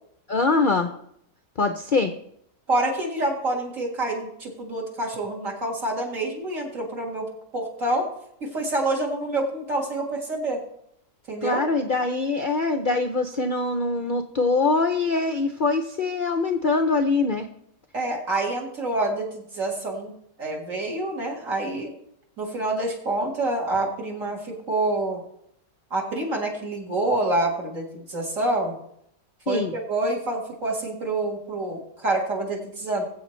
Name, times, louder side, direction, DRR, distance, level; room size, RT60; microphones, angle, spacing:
voice 1, 0.3-0.9 1.6-2.1 11.4-17.5 29.5-29.7, left 3 dB, 70° left, 6 dB, 0.4 m, -23 dB
voice 2, 2.7-7.3 7.5-8.1 8.4-10.6 11.3-11.6 17.9-20.1 20.4-21.9 22.4-25.2 25.9-28.7 29.5-33.0, right 2 dB, 55° right, -1 dB, 2.1 m, -27 dB
21.0 x 7.9 x 3.2 m, 0.73 s
omnidirectional pair, 1.7 m